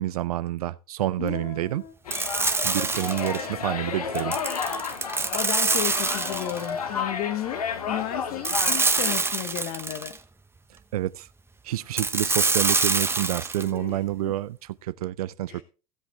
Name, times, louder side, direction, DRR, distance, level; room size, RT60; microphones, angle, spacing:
voice 1, 0.0-1.8 2.6-4.4 10.9-11.3 11.6-15.6, right 14 dB, 80° right, 0.4 m, -28 dB
voice 2, 1.2-1.9 5.0-10.2 13.6-14.0 14.2-14.3 15.5-15.6, left 12 dB, 55° left, 1.0 m, -34 dB
sound 1, 2.1-9.2, left 6 dB, 85° left, 1.2 m, -32 dB
sound 2, 2.1-3.5 4.2-6.7 8.4-10.2 12.0-13.7, right 3 dB, 10° right, 0.9 m, -25 dB
16.0 x 7.7 x 3.3 m
hypercardioid pair, 75°, 19 cm